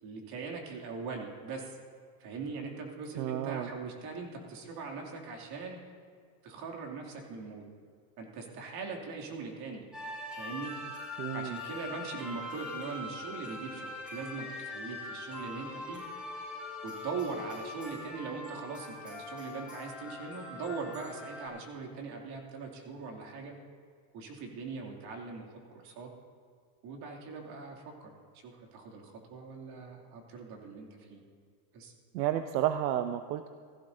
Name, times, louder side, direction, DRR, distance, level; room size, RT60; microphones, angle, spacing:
voice 1, 0.0-1.8 2.2-5.8 6.4-7.7 8.2-9.8 10.4-10.7 11.3-16.0 16.8-23.6 24.1-25.4 25.7-26.1 26.8-28.1 28.4-31.2 31.7-31.9, right 4 dB, 50° right, 0 dB, 2.8 m, -41 dB
voice 2, 3.2-3.7 11.2-11.6 32.1-33.5, right 11 dB, 80° right, 9 dB, 0.7 m, -31 dB
sound 1, 9.9-21.5, left 2 dB, ahead, 3.8 m, -42 dB
17.0 x 15.0 x 2.7 m, 2.1 s
supercardioid pair, 135°, 50 cm